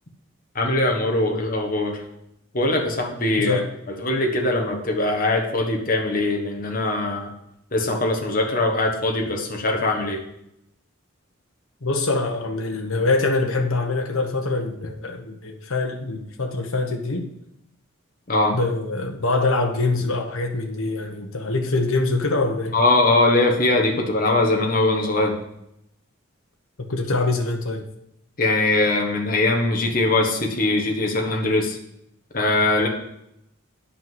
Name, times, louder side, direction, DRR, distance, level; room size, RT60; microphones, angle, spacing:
voice 1, 0.5-2.0 2.5-3.6 4.0-7.3 7.7-10.2 18.3-18.6 22.7-25.3 28.4-31.8 32.3-32.9, left 2 dB, 40° left, 1 dB, 1.4 m, -21 dB
voice 2, 11.8-17.3 18.5-22.8 26.9-27.9, left 3 dB, 75° left, 2 dB, 1.1 m, -24 dB
8.5 x 5.7 x 7.8 m, 0.79 s
head